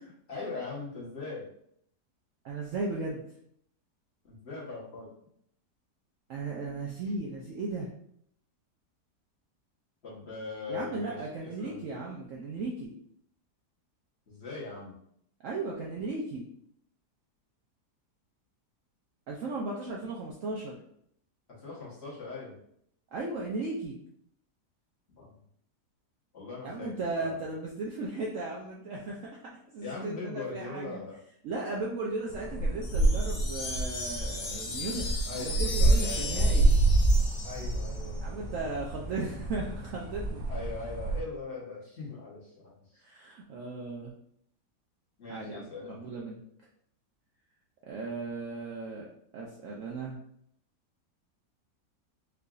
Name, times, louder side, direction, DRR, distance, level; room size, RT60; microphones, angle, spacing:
voice 1, 0.0-1.5 4.2-5.1 10.0-11.2 11.6-11.8 14.3-14.9 21.6-22.5 25.1-25.4 26.3-26.9 27.2-27.4 29.8-31.2 35.2-36.6 37.4-38.5 40.5-43.0 45.2-46.0, left 4 dB, 45° left, -6 dB, 1.2 m, -40 dB
voice 2, 2.4-3.2 6.3-7.9 10.7-12.9 15.4-16.4 19.3-20.8 23.1-24.0 26.6-31.0 31.4-36.7 38.2-40.4 43.0-44.1 45.3-46.4 47.8-49.1 49.3-50.2, right 3 dB, 70° right, -2 dB, 0.8 m, -36 dB
sound 1, 32.3-41.2, right 2 dB, 85° right, 1.2 m, -27 dB
sound 2, 32.8-38.2, left 3 dB, 75° left, 1.5 m, -38 dB
4.7 x 2.5 x 2.4 m, 0.69 s
omnidirectional pair, 1.8 m